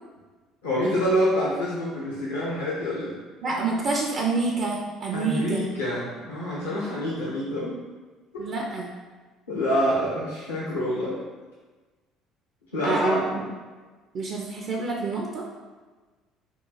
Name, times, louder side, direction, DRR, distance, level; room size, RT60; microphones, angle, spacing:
voice 1, 0.6-3.1 5.1-7.8 9.5-11.2 12.7-13.4, equal, 85° left, -7 dB, 0.7 m, -26 dB
voice 2, 3.4-5.7 8.4-8.9 12.8-13.5 14.1-15.4, right 3 dB, 50° right, -1 dB, 0.4 m, -27 dB
3.0 x 2.3 x 3.9 m, 1.3 s
hypercardioid pair, 60°, 0 cm